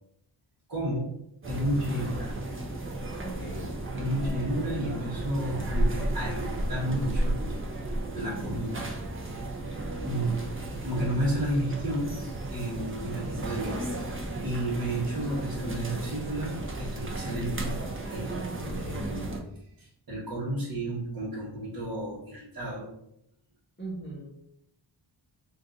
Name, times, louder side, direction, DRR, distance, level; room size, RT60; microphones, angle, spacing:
voice 1, 0.7-1.1 1.5-2.4 4.0-7.4 8.1-8.9 10.0-10.3 10.8-12.2 12.5-14.1 14.4-17.8 18.1-19.3 19.8-22.9, right 1 dB, 45° right, -8 dB, 1.1 m, -32 dB
sound 1, 1.4-19.4, right 1 dB, 25° right, 0.6 m, -33 dB
voice 2, 3.2-3.7 8.2-8.6 10.2-10.5 18.3-18.8 23.8-24.3, right 2 dB, 25° left, -5 dB, 1.1 m, -40 dB
3.6 x 2.6 x 3.9 m, 0.75 s
wide cardioid pair, 155°, 49 cm